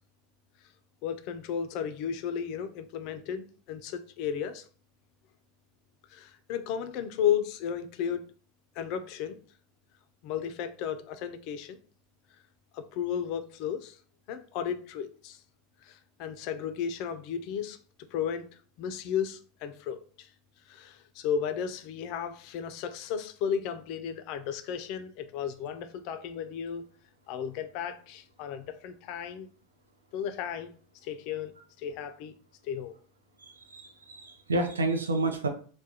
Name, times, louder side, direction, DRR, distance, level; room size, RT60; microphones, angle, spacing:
voice 1, 1.0-4.7 6.1-8.2 8.8-9.4 10.2-11.8 12.7-14.0 14.3-15.4 15.8-17.8 18.1-18.4 18.8-20.3 20.7-26.9 27.3-29.5 30.1-30.7 31.0-32.3 32.6-32.9, left 8 dB, 55° left, 9 dB, 0.3 m, -34 dB
voice 2, 33.4-35.5, right 2 dB, 90° right, 5 dB, 0.5 m, -30 dB
2.3 x 2.1 x 2.8 m, 0.42 s
hypercardioid pair, 90°, 0 cm